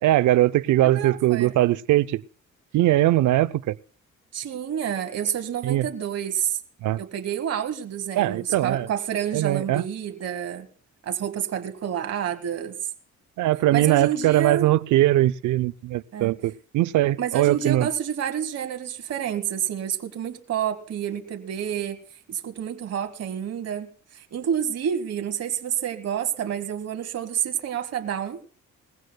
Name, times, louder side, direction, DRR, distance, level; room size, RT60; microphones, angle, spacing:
voice 1, 0.0-2.2 2.7-3.8 5.6-5.9 6.8-7.0 8.2-8.9 9.3-9.8 13.4-17.9, right 15 dB, 75° right, 0.6 m, -21 dB
voice 2, 0.8-1.5 4.3-6.6 7.0-10.7 11.0-12.8 13.7-14.7 16.1-16.3 17.2-22.0 22.3-28.4, right 9 dB, 55° right, 1.4 m, -29 dB
20.5 x 16.0 x 2.2 m
cardioid pair, 90°, 30 cm